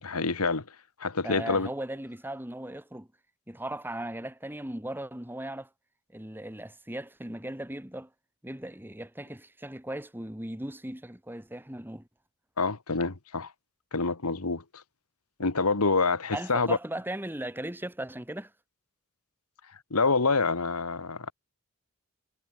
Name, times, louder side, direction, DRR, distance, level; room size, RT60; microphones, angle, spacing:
voice 1, 0.0-0.6 1.0-1.7 12.6-13.5 13.9-14.6 15.4-16.8 19.9-21.3, left 4 dB, 85° left, 1.7 m, -26 dB
voice 2, 1.2-3.1 3.5-5.7 6.1-8.1 8.4-12.1 16.3-18.5, right 1 dB, 10° right, 1.7 m, -37 dB
head